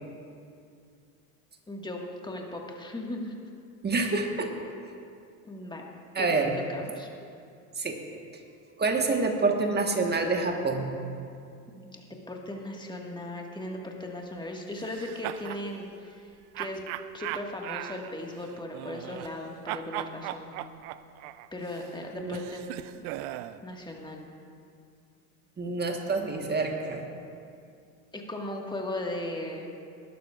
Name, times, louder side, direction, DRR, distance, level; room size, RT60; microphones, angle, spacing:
voice 1, 1.7-3.4 5.4-5.9 6.2-6.3 6.7-7.1 11.7-16.8 17.1-20.5 21.5-22.6 22.9-23.0 23.6-24.3 28.1-29.7, left 1 dB, 10° left, 0 dB, 1.7 m, -37 dB
voice 2, 3.8-4.5 6.1-6.5 7.8-8.0 8.8-10.9 22.1-22.4 25.6-27.0, right 3 dB, 20° right, 3 dB, 1.5 m, -27 dB
sound 1, 14.8-15.7 16.6-19.4 19.7-23.6, right 14 dB, 50° right, 0.5 m, -38 dB
19.5 x 12.0 x 2.5 m, 2.4 s
hypercardioid pair, 85°, 47 cm